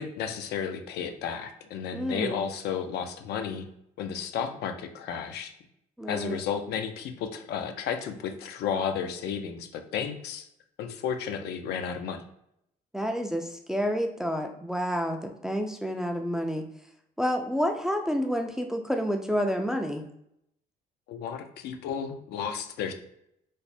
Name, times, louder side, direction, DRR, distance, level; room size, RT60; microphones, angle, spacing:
voice 1, 0.0-3.7 4.0-5.5 6.1-10.5 10.8-12.2 21.1-22.9, left 7 dB, 75° left, 6 dB, 0.5 m, -33 dB
voice 2, 1.9-2.4 6.0-6.4 12.9-16.6 17.2-20.1, equal, 5° right, 4 dB, 0.3 m, -29 dB
3.2 x 2.0 x 4.1 m, 0.77 s
cardioid pair, 110°, 17 cm